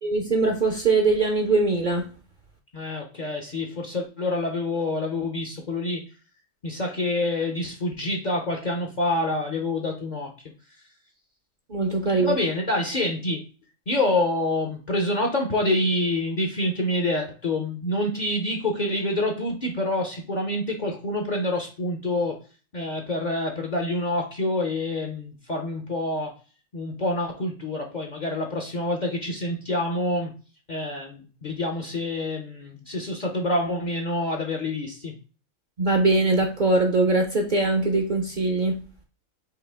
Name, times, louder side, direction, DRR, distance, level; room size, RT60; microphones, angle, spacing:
voice 1, 0.0-2.1 11.7-12.3 35.8-38.8, right 3 dB, 50° right, 0.6 m, -22 dB
voice 2, 2.7-6.0 6.6-10.3 12.2-13.4 13.9-22.4 22.7-26.3 26.7-30.3 30.7-35.1, left 1 dB, 45° left, 0.6 m, -27 dB
4.9 x 2.9 x 3.4 m
omnidirectional pair, 1.4 m